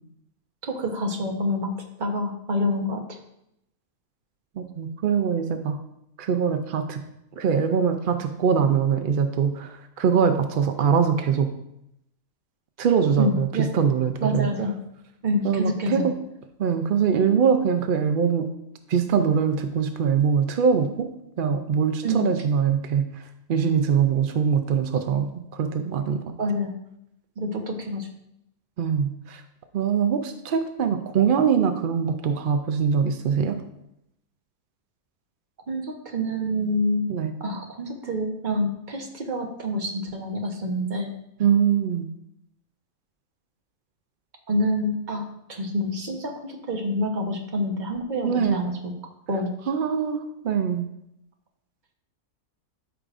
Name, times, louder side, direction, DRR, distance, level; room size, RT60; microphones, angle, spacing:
voice 1, 0.6-1.7 2.0-3.2 13.2-13.7 14.2-14.7 15.2-16.1 22.0-22.3 26.4-26.7 27.4-28.1 35.7-37.1 37.4-41.1 44.5-48.9 49.3-49.5, equal, 35° right, 2 dB, 1.0 m, -27 dB
voice 2, 4.6-5.8 6.2-7.0 7.4-11.5 12.8-13.5 13.7-14.5 15.4-16.1 16.6-18.5 18.9-21.1 21.4-23.0 23.5-26.2 28.8-29.4 29.7-33.6 37.1-37.3 41.4-42.1 48.2-48.6 49.7-50.9, right 7 dB, 85° right, 7 dB, 0.4 m, -23 dB
13.0 x 5.0 x 2.5 m, 0.80 s
omnidirectional pair, 1.6 m